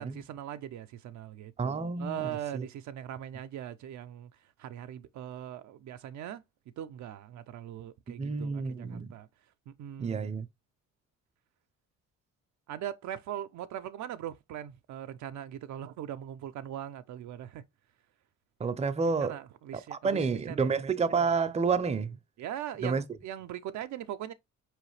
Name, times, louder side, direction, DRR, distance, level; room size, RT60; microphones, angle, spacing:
voice 1, 0.0-4.3 4.6-6.4 6.8-9.3 9.7-10.3 12.7-17.6 19.2-20.7 22.4-24.3, right 11 dB, 70° right, 0.5 m, -40 dB
voice 2, 1.6-2.7 8.1-9.1 10.0-10.5 18.6-19.4 19.9-22.2 22.8-23.0, right 5 dB, 20° right, 0.5 m, -29 dB
4.7 x 3.1 x 3.1 m
cardioid pair, 90°, 30 cm